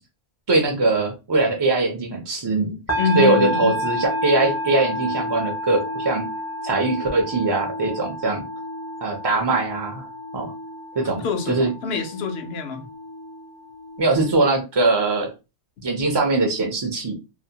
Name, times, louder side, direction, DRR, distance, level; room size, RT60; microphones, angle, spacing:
voice 1, 0.5-2.7 3.2-6.3 6.6-8.5 9.0-10.1 10.3-10.5 11.0-11.7 14.0-15.3 15.8-17.1, right 3 dB, 45° right, 0.3 m, -21 dB
sound 1, 2.9-14.3, equal, 20° left, 0.4 m, -30 dB
voice 2, 3.0-3.7 11.0-12.9, left 5 dB, 70° left, 0.8 m, -26 dB
2.6 x 2.1 x 2.7 m
omnidirectional pair, 1.1 m